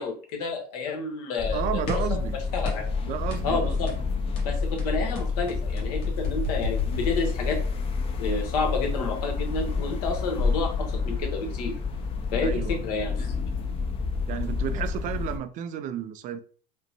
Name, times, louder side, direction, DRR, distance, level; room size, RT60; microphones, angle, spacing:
voice 1, 0.0-2.2 2.5-2.9 3.4-3.9 4.4-7.6 8.2-11.8 12.3-13.3, left 3 dB, 75° left, 1.2 m, -30 dB
sound 1, 1.4-15.4, left 4 dB, 30° left, 0.6 m, -29 dB
voice 2, 1.5-2.4 3.0-3.8 12.4-12.8 14.3-16.4, right 9 dB, 40° right, 0.4 m, -32 dB
sound 2, 1.9-2.2 2.6-3.0 3.3-3.5 3.9-4.1 4.4-7.7, left 6 dB, 50° left, 1.6 m, -34 dB
5.2 x 2.1 x 2.8 m
supercardioid pair, 125°, 20 cm